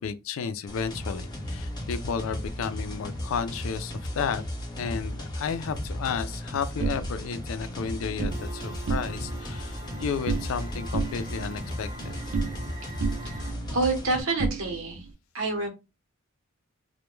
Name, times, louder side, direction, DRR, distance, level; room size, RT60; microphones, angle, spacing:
voice 1, 0.0-4.4 4.8-12.2, left 6 dB, 80° left, 0.3 m, -32 dB
sound 1, 0.7-14.2, equal, 20° left, 0.6 m, -35 dB
sound 2, 6.8-8.4 8.8-9.4 9.7-10.6 10.9-12.7 13.0-15.1, right 4 dB, 70° right, 0.4 m, -32 dB
sound 3, 8.3-13.5, right 1 dB, 20° right, 0.6 m, -45 dB
voice 2, 13.2-15.1 15.3-15.7, right 3 dB, 90° right, 0.9 m, -28 dB
2.2 x 2.1 x 3.0 m
head